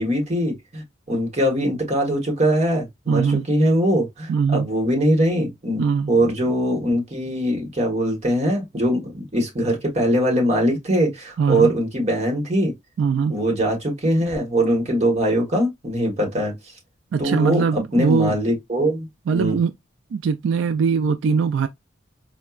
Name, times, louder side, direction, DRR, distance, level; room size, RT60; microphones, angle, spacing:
voice 1, 0.0-12.7 13.3-16.5 17.2-19.6, equal, 35° right, 1.2 m, -22 dB
voice 2, 3.1-3.4 4.3-4.7 5.8-6.1 11.4-11.7 13.0-13.4 17.1-18.4 19.3-19.7 20.1-21.7, right 6 dB, 90° right, 0.3 m, -21 dB
4.4 x 2.1 x 2.3 m
head